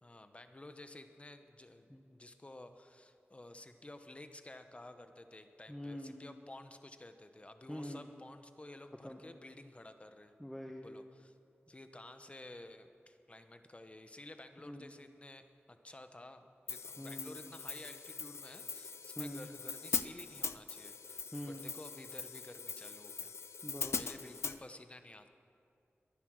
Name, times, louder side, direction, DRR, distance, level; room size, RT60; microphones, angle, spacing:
voice 1, 0.0-10.3 10.8-11.3 11.7-23.3 23.9-25.3, left 2 dB, 30° left, 8 dB, 1.0 m, -53 dB
voice 2, 5.7-6.2 7.7-8.1 9.0-9.2 10.4-10.9 14.7-14.9 17.0-17.4 19.2-19.5 21.3-21.7 23.6-24.0, equal, 5° left, 2 dB, 1.0 m, -44 dB
Hi-hat, 16.7-24.6, left 5 dB, 85° left, 0.5 m, -41 dB
21.5 x 9.9 x 6.5 m, 2.5 s
wide cardioid pair, 80°, 4 cm